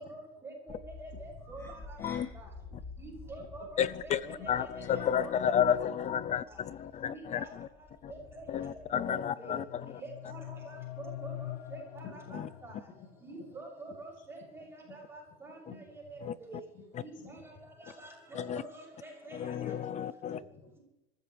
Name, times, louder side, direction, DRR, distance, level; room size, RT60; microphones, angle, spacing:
voice 1, 0.0-2.5 3.0-5.4 7.1-7.5 8.1-8.5 8.9-9.6 9.9-12.7 13.2-15.6 16.1-16.7 17.0-17.5 17.8-19.4, right 2 dB, 10° right, 7.2 m, -47 dB
sound 1, 0.7-9.1, left 3 dB, 10° left, 2.9 m, -51 dB
voice 2, 3.8-7.7 8.0-8.1 8.5-9.9 12.3-12.5 16.2-16.3 16.9-17.0 18.3-18.6 19.3-20.4, left 9 dB, 25° left, 0.5 m, -32 dB
sound 2, 9.3-13.3, left 14 dB, 75° left, 0.6 m, -44 dB
voice 3, 12.0-12.4 12.8-13.5 14.8-15.0 15.7-15.8 16.7-16.8 17.1-17.4 20.3-20.8, left 6 dB, 40° left, 3.4 m, -50 dB
26.0 x 14.5 x 3.3 m
supercardioid pair, 140°, 31 cm